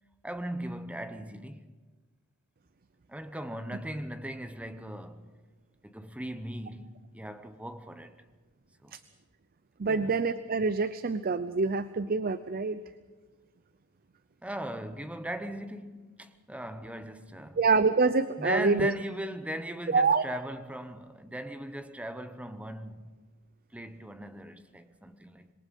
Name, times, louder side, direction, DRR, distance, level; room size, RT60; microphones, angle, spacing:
voice 1, 0.2-1.7 3.1-5.3 5.8-8.2 8.8-8.9 9.9-10.1 14.4-17.6 18.4-23.1 23.7-25.5, right 1 dB, 5° right, 0.9 m, -38 dB
voice 2, 9.8-12.8 17.6-18.9 19.9-20.2, right 4 dB, 40° right, 0.6 m, -26 dB
26.5 x 21.5 x 5.4 m
head